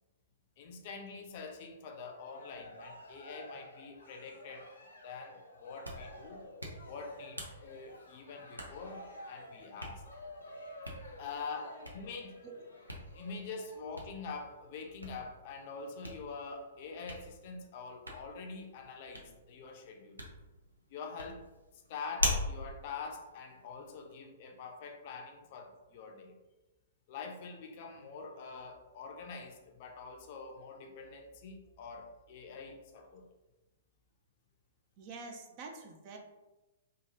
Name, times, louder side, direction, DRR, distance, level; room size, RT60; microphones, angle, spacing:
voice 1, 0.6-4.6 5.0-6.4 6.8-10.1 11.2-12.4 13.1-20.2 20.9-21.4 21.9-26.3 27.1-33.2, left 4 dB, 45° left, 2 dB, 0.5 m, -45 dB
Cheering, 2.0-13.8, left 1 dB, 75° left, 0.7 m, -52 dB
Hands, 5.6-24.1, equal, 90° right, 0.6 m, -43 dB
voice 2, 11.6-11.9 12.4-12.6 35.0-36.2, right 3 dB, 40° right, 3 dB, 0.5 m, -47 dB
3.0 x 2.3 x 2.7 m, 1.1 s
figure-of-eight pair, 115°, 0 cm